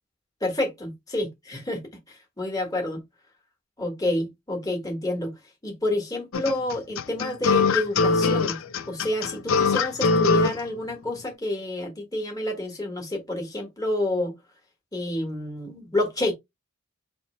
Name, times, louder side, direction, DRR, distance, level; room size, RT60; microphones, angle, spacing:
voice 1, 0.4-1.8 2.1-3.0 3.8-5.3 5.6-8.6 8.9-14.3 14.9-16.3, left 1 dB, 15° left, 1.4 m, -29 dB
sound 1, 6.3-10.6, left 4 dB, 65° left, 0.5 m, -21 dB
4.3 x 2.9 x 3.0 m
head